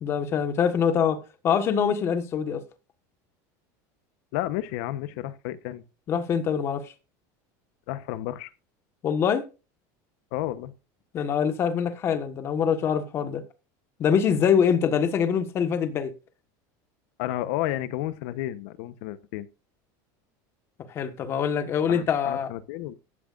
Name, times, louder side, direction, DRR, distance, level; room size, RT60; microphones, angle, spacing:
voice 1, 0.0-1.2 1.4-2.6 6.1-6.9 9.0-9.4 11.1-13.4 14.0-16.1 20.9-22.5, left 7 dB, 25° left, 1.4 m, -24 dB
voice 2, 4.3-5.8 7.9-8.5 10.3-10.7 17.2-19.5 21.9-23.0, left 14 dB, 60° left, 1.0 m, -31 dB
15.0 x 12.5 x 2.5 m
cardioid pair, 180°, 10 cm